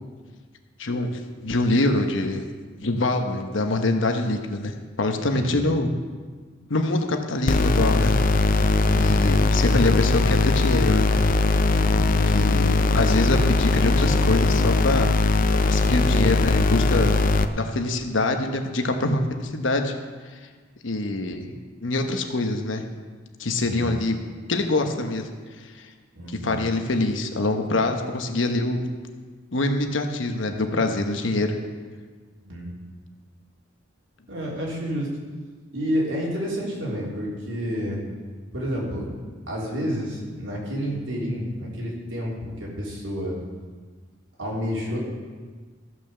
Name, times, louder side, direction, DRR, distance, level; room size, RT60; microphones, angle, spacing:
voice 1, 0.8-2.4 2.8-5.9 6.7-8.2 9.0-11.1 12.3-15.1 15.7-17.1 17.5-19.9 20.8-21.5 21.8-22.8 23.4-24.1 24.5-25.3 25.6-25.9 26.4-28.8 29.5-31.5, left 2 dB, 75° left, 5 dB, 1.1 m, -24 dB
voice 2, 5.3-5.6 8.7-9.1 11.7-12.0 23.6-23.9 26.1-26.6 32.4-32.7 34.3-35.1 35.7-38.0 38.5-39.0 39.5-43.4 44.4-45.0, equal, 80° right, -4 dB, 3.4 m, -29 dB
sound 1, 7.5-17.5, left 3 dB, 45° left, 0.5 m, -20 dB
14.5 x 6.1 x 6.9 m, 1.5 s
head